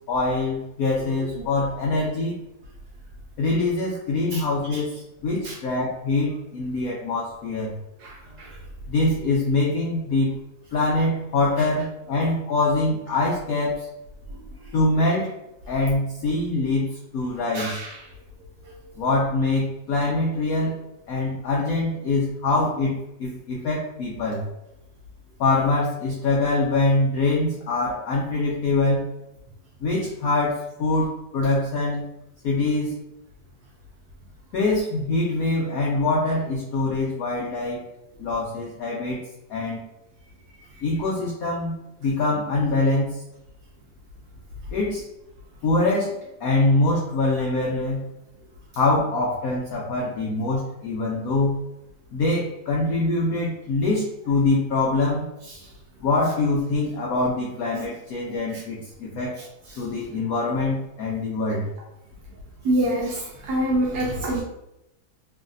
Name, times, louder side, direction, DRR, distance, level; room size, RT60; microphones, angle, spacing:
voice 1, 0.1-2.4 3.4-7.7 8.9-10.3 10.7-13.9 14.7-15.3 15.7-16.9 17.1-17.8 19.0-20.7 21.1-24.4 25.4-29.0 29.8-32.1 32.4-33.0 34.5-37.8 38.2-39.2 39.5-39.8 40.8-41.7 42.0-43.2 44.7-45.0 45.6-48.0 48.8-51.6 52.1-55.3 56.0-59.4 59.8-61.7, left 2 dB, 80° left, -3 dB, 0.8 m, -24 dB
voice 2, 8.0-8.5 17.5-17.9 62.6-64.4, right 1 dB, 70° right, -2 dB, 1.0 m, -26 dB
3.1 x 2.6 x 2.5 m, 0.89 s
omnidirectional pair, 2.1 m